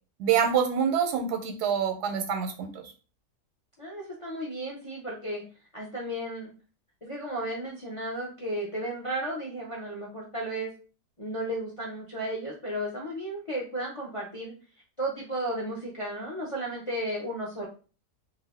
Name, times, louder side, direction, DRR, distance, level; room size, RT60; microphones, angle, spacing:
voice 1, 0.2-2.8, right 7 dB, 90° right, 5 dB, 1.2 m, -26 dB
voice 2, 3.8-5.4 5.7-6.5 7.0-10.7 11.2-14.5 15.0-17.7, right 1 dB, 40° left, -3 dB, 0.4 m, -34 dB
2.7 x 2.5 x 3.4 m, 0.35 s
omnidirectional pair, 1.6 m